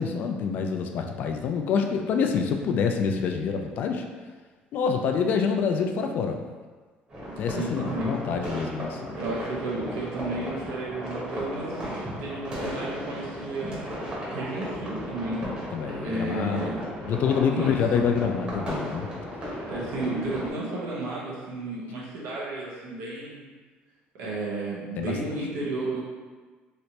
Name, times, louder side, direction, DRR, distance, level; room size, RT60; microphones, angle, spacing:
voice 1, 0.0-4.0 4.7-6.4 7.4-9.2 15.7-16.8 17.0-19.1 25.0-25.1, left 6 dB, 55° left, 4 dB, 0.4 m, -26 dB
sound 1, 7.1-20.5, equal, 30° right, 1.1 m, -35 dB
voice 2, 7.5-8.1 9.1-13.8 14.3-15.4 16.0-16.8 17.5-17.8 19.6-23.4 24.1-26.0, right 2 dB, 90° right, -5 dB, 1.0 m, -33 dB
3.2 x 2.9 x 2.9 m, 1.4 s
cardioid pair, 135°, 4 cm